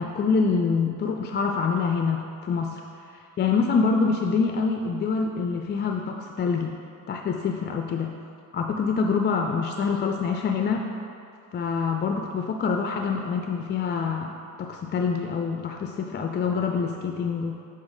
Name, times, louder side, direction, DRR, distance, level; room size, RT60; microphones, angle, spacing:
voice 1, 0.0-2.8 3.1-6.7 7.1-8.2 8.5-10.9 11.5-17.6, left 5 dB, 25° left, 3 dB, 0.4 m, -26 dB
7.2 x 4.1 x 4.7 m, 2.6 s
figure-of-eight pair, 40°, 42 cm